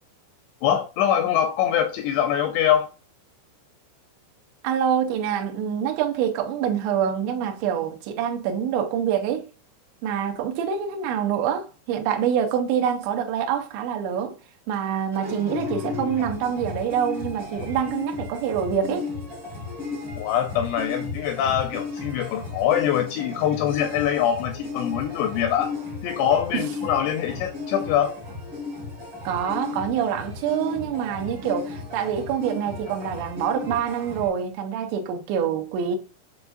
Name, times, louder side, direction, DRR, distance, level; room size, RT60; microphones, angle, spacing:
voice 1, 0.6-2.9 20.2-25.7 26.0-28.2, left 9 dB, 85° left, 2.5 m, -23 dB
voice 2, 4.6-9.5 10.0-14.4 14.7-19.1 26.5-26.6 29.2-36.0, right 8 dB, 80° right, 2.8 m, -26 dB
sound 1, 15.1-34.3, left 4 dB, 50° right, 1.4 m, -34 dB
6.9 x 2.3 x 2.5 m
omnidirectional pair, 5.4 m